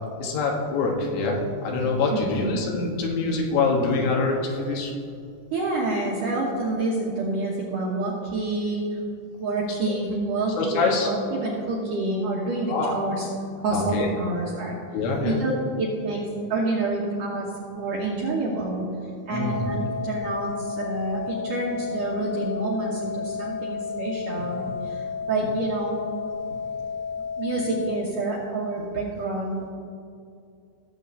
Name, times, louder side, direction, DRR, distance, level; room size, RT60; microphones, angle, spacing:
voice 1, 0.2-4.9 10.6-11.1 12.7-12.9 13.7-14.1 14.9-15.4 19.3-19.7, left 3 dB, 80° left, -1 dB, 3.6 m, -25 dB
voice 2, 5.5-8.9 9.4-13.3 13.6-14.8 15.2-15.5 15.8-16.2 16.5-17.5 17.7-18.9 19.3-25.0 25.3-26.0 27.4-29.7, right 2 dB, 75° right, -5 dB, 1.9 m, -28 dB
sound 1, 19.3-27.9, left 5 dB, 55° right, 2.0 m, -32 dB
17.5 x 7.7 x 2.7 m, 2.4 s
omnidirectional pair, 5.2 m